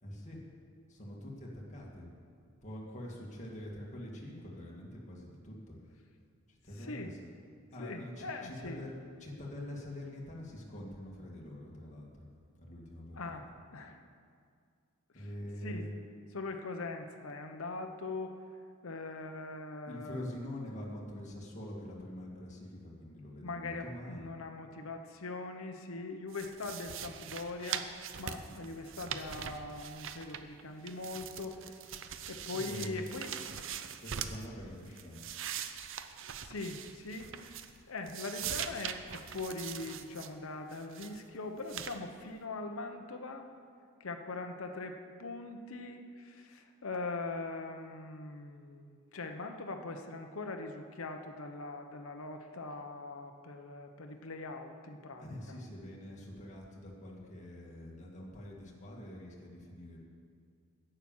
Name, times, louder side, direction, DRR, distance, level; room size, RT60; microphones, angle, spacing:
voice 1, 0.0-0.4 0.9-2.1 2.6-5.8 6.5-7.2 7.7-8.9 9.2-12.3 12.6-13.2 15.1-16.0 19.9-24.3 32.7-33.0 34.0-35.2 55.2-60.0, left 1 dB, 35° left, -3 dB, 2.1 m, -45 dB
voice 2, 6.8-7.1 7.8-8.8 13.1-14.0 15.1-15.2 15.6-18.3 18.8-20.3 23.4-31.8 32.3-33.3 36.4-43.5 44.0-55.6, left 3 dB, 80° left, 5 dB, 0.9 m, -42 dB
sound 1, 26.3-30.6 30.9-34.5 34.9-37.8 38.1-40.3 40.7-41.2 41.7-42.0, right 8 dB, 65° right, 0.6 m, -42 dB
10.5 x 9.0 x 7.3 m, 2.2 s
head